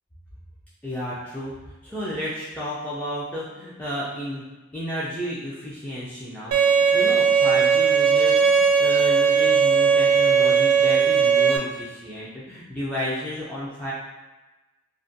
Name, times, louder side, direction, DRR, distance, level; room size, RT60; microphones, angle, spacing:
voice 1, 0.8-1.5 1.8-4.4 4.7-13.9, equal, 5° left, -9 dB, 0.3 m, -32 dB
Bowed string instrument, 6.5-11.6, right 6 dB, 80° right, 0.3 m, -18 dB
2.4 x 2.1 x 2.5 m, 1.1 s
head